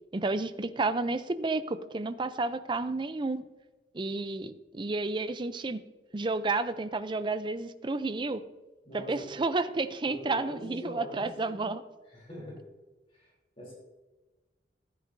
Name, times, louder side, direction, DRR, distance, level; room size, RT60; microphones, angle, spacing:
voice 1, 0.1-3.4 3.9-5.8 6.1-8.4 8.9-11.8, right 3 dB, 25° right, 12 dB, 0.4 m, -31 dB
voice 2, 8.8-9.4 10.1-11.7 12.1-12.6 13.1-13.3 13.6-13.7, equal, 35° left, -4 dB, 3.4 m, -42 dB
14.0 x 9.2 x 2.6 m, 1.2 s
head